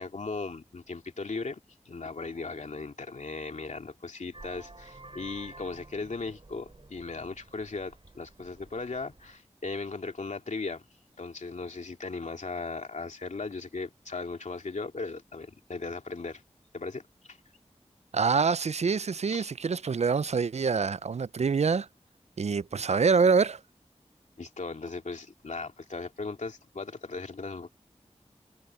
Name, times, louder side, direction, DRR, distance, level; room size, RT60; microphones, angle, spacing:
voice 1, 0.0-1.6 1.9-10.8 11.2-16.4 16.7-17.0 17.3-17.4 19.3-19.5 24.4-27.7, left 3 dB, 85° left, 2.6 m, -37 dB
Vehicle horn car horn honking, 4.3-9.4, right 2 dB, 50° right, 7.2 m, -51 dB
voice 2, 18.1-21.9 22.4-23.6, right 5 dB, 65° right, 0.4 m, -25 dB
wide cardioid pair, 70°, 12 cm